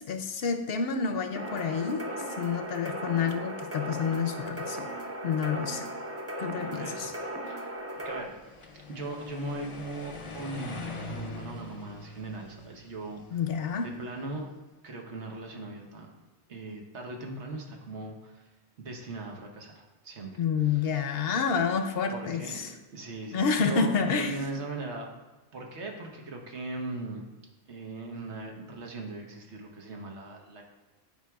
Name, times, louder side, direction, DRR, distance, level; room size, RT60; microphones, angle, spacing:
voice 1, 0.0-2.1 2.4-4.9 5.2-5.9 6.4-7.1 13.3-13.9 20.4-22.7 23.3-24.4, left 5 dB, 65° left, 7 dB, 0.8 m, -29 dB
sound 1, 1.4-8.2, right 1 dB, 20° right, 0.4 m, -37 dB
voice 2, 6.7-7.1 7.5-8.3 8.9-13.4 13.8-14.5 14.8-16.1 16.5-18.5 18.8-20.3 20.6-20.9 22.1-22.6 22.9-25.1 25.5-27.2 27.7-30.6, right 2 dB, 85° right, 1 dB, 1.3 m, -39 dB
sound 2, 8.1-14.2, left 3 dB, 35° left, 0.7 m, -43 dB
10.5 x 4.6 x 2.3 m, 1.2 s
omnidirectional pair, 1.1 m